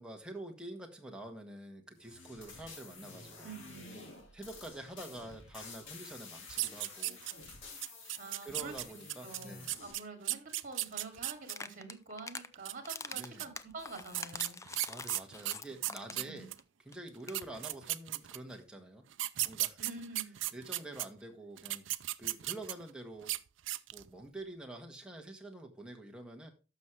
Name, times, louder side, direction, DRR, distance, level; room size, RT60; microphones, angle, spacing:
voice 1, 0.0-3.5 4.3-7.2 8.4-9.7 13.1-13.5 14.9-16.5 16.8-19.1 19.4-19.8 20.5-21.8 22.2-23.3 23.9-26.5, right 1 dB, 5° right, 2 dB, 1.6 m, -47 dB
sound 1, 2.0-9.9, left 4 dB, 70° left, 2.2 m, -51 dB
voice 2, 3.4-4.0 8.2-8.7 9.2-14.6 16.1-16.5 19.8-20.3, right 3 dB, 40° right, 5 dB, 2.7 m, -47 dB
sound 2, 6.5-7.5 7.8-11.5 12.5-13.4 14.1-16.6 17.1-17.2 17.3-18.5 19.1-21.0 21.6-22.9 23.2-23.4 23.7-24.1, right 17 dB, 65° right, 0.5 m, -36 dB
Chugging Water, 11.4-12.5 12.8-16.3 16.6-16.7 16.9-17.0 17.2-17.4, left 4 dB, 15° left, 0.4 m, -44 dB
12.0 x 6.5 x 3.3 m, 0.31 s
head